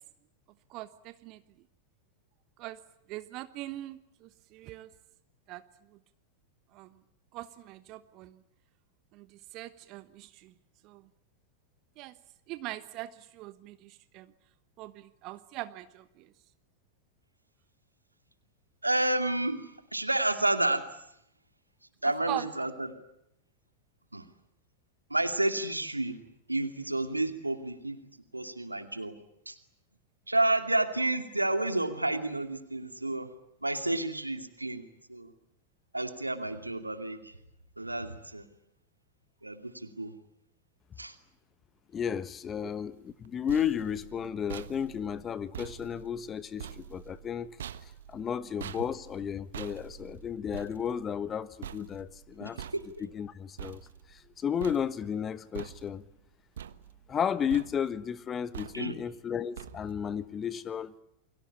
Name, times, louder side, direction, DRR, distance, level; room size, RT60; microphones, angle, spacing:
voice 1, 0.7-1.4 2.6-2.8 3.1-4.9 5.5-5.6 5.9-6.0 6.7-7.0 7.3-8.4 9.1-10.5 10.8-11.1 12.0-12.2 12.5-14.3 14.8-16.3 22.3-22.4 42.6-42.7, right 16 dB, 40° right, 1.1 m, -42 dB
voice 2, 18.8-21.0 22.0-22.9 24.1-24.3 25.1-26.2 26.5-28.0 28.3-29.2 29.5-29.6 30.3-33.3 33.6-35.3 35.9-37.4 37.8-38.5 39.4-40.1 41.0-41.1 52.4-53.0 58.7-59.0, right 2 dB, 85° right, 2.5 m, -30 dB
voice 3, 41.9-47.5 48.1-52.6 53.1-56.0 57.1-60.9, left 8 dB, 25° left, 1.3 m, -33 dB
sound 1, 43.1-54.3 54.6-55.2 55.5-56.2 56.6-57.2 57.5-58.0 58.5-59.1 59.6-60.1, right 10 dB, 60° right, 1.2 m, -46 dB
29.0 x 23.5 x 8.5 m
figure-of-eight pair, 90°, 0 cm